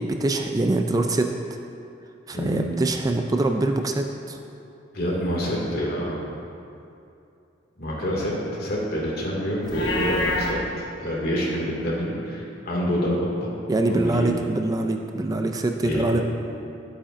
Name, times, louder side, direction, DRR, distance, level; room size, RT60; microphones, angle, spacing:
voice 1, 0.0-1.3 2.3-4.4 13.7-16.2, right 2 dB, 20° right, 4 dB, 0.4 m, -24 dB
voice 2, 2.3-2.6 4.9-6.2 7.8-13.5 13.9-14.4 15.8-16.2, equal, 60° left, -4 dB, 2.2 m, -27 dB
Livestock farm animals working animals, 9.6-10.5, left 2 dB, 80° left, 1.1 m, -26 dB
11.5 x 8.4 x 2.6 m, 2.6 s
head